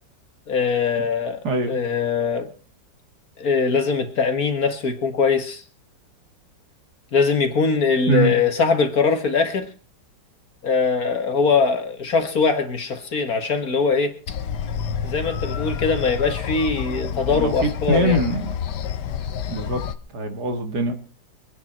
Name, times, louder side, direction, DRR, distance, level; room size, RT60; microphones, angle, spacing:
voice 1, 0.5-1.4 1.7-2.5 3.4-5.6 7.1-9.7 10.6-14.2 15.0-18.2, left 5 dB, 50° left, 2.0 m, -21 dB
voice 2, 1.4-1.8 8.1-8.3 17.3-18.6 19.5-19.8 20.1-20.9, right 1 dB, 60° right, 2.4 m, -23 dB
sound 1, 14.3-20.0, left 8 dB, 70° left, 1.4 m, -29 dB
24.0 x 9.5 x 4.4 m
omnidirectional pair, 2.0 m